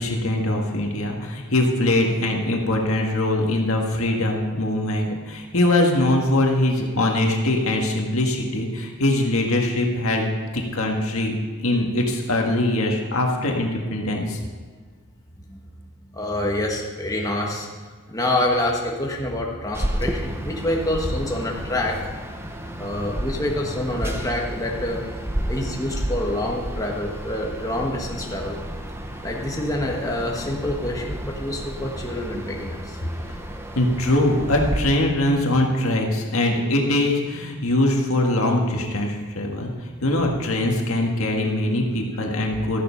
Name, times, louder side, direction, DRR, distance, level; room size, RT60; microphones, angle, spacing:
voice 1, 0.0-10.2 10.5-11.3 11.6-14.4 33.7-42.8, left 1 dB, 75° left, 1 dB, 1.7 m, -22 dB
voice 2, 16.1-17.7 18.1-21.9 22.8-25.0 25.5-28.6 29.2-33.0 42.2-42.3, left 1 dB, 15° left, -1 dB, 1.3 m, -26 dB
sound 1, 19.7-34.8, right 1 dB, 10° right, 0.8 m, -31 dB
13.5 x 7.0 x 5.7 m, 1.5 s
head